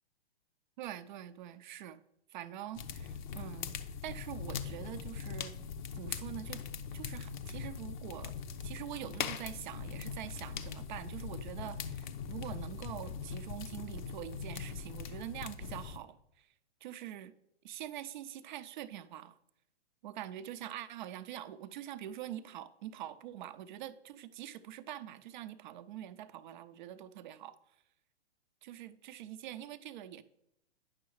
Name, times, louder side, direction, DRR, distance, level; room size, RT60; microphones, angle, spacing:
voice 1, 0.8-2.0 2.3-3.7 4.0-5.5 5.9-6.6 6.9-8.3 8.6-16.5 16.8-17.3 17.6-19.4 20.0-27.6 28.6-30.2, right 12 dB, 45° right, 13 dB, 0.5 m, -44 dB
sound 1, 2.7-16.0, left 6 dB, 45° left, 0.6 m, -41 dB
9.3 x 6.2 x 3.1 m, 0.82 s
hypercardioid pair, 125°, 33 cm